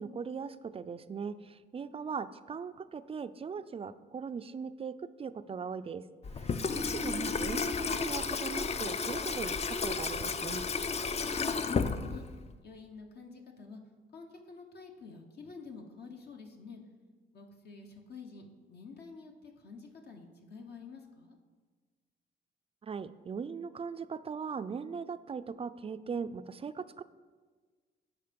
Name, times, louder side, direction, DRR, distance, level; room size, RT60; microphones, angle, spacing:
voice 1, 0.0-6.0 6.4-10.6 22.8-27.0, right 6 dB, 30° right, 12 dB, 0.4 m, -39 dB
Water tap faucet / Sink (filling or washing), 6.2-12.5, left 4 dB, 35° left, 0.5 m, -33 dB
voice 2, 11.4-12.2 12.6-13.8 14.1-16.8 17.3-21.4, left 4 dB, 55° left, 2 dB, 1.1 m, -49 dB
10.0 x 4.6 x 5.2 m, 1.4 s
cardioid pair, 90°, 20 cm